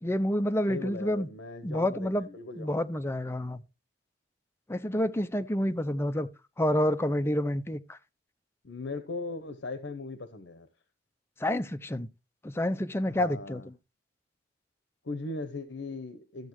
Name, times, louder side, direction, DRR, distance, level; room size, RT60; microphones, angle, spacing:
voice 1, 0.0-1.3 1.6-2.3 2.6-3.6 4.7-6.3 6.6-8.0 11.4-12.1 12.4-13.6, left 1 dB, 15° left, 0.5 m, -28 dB
voice 2, 0.7-2.9 8.6-10.7 13.1-13.7 15.0-16.5, left 3 dB, 85° left, 0.8 m, -39 dB
13.0 x 7.3 x 3.0 m
head